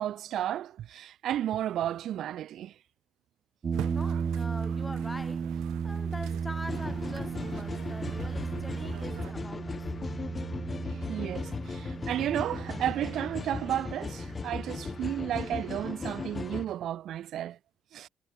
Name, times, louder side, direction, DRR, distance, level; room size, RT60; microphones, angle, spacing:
voice 1, 0.0-2.7 10.8-17.6 17.9-18.1, right 11 dB, 60° right, 1.0 m, -33 dB
sound 1, 3.6-16.7, right 6 dB, 35° right, 1.1 m, -36 dB
voice 2, 3.7-5.5 5.8-9.9, left 1 dB, 5° left, 7.1 m, -43 dB
sound 2, 3.7-9.3, right 15 dB, 85° right, 2.2 m, -45 dB
sound 3, 6.7-16.7, left 4 dB, 25° left, 0.7 m, -37 dB
cardioid pair, 140°, 0 cm